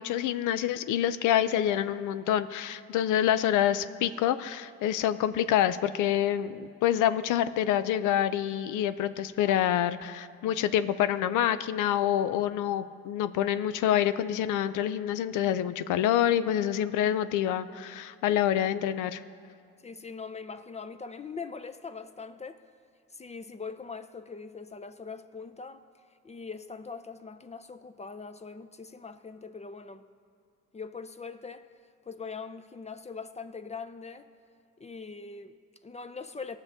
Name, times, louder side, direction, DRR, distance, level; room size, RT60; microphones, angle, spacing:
voice 1, 0.0-19.2, left 11 dB, 85° left, 0.5 m, -27 dB
voice 2, 19.8-22.6 23.1-25.8 26.2-30.1 30.7-31.7 32.1-34.3 34.8-36.6, left 5 dB, 20° left, 0.5 m, -42 dB
19.0 x 6.5 x 3.6 m
cardioid pair, 90°, 30 cm